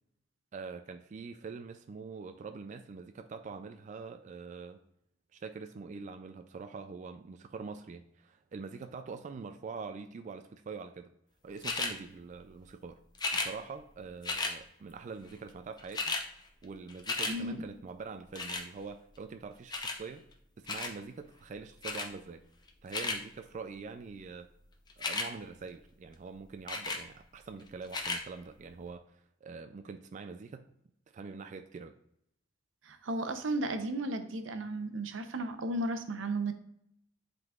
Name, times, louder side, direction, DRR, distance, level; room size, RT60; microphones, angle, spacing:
voice 1, 0.5-4.8 5.3-11.1 11.4-13.0 13.3-16.2 16.6-20.3 20.6-22.4 22.8-24.5 25.0-30.7 31.1-31.9, right 4 dB, 40° right, 7 dB, 0.3 m, -44 dB
sound 1, 11.6-11.9 13.1-13.5 14.2-14.6 15.5-15.6 15.8-16.3 16.6-17.4 18.4-18.7 19.7-20.0 20.7-21.0 21.8-22.1 22.7-23.2 24.9-25.3 26.7-27.0 27.8-28.2 28.9-29.0, left 3 dB, 20° left, 0.6 m, -34 dB
voice 2, 32.8-36.5, right 2 dB, 85° right, 8 dB, 0.7 m, -34 dB
10.5 x 3.8 x 2.4 m, 0.74 s
head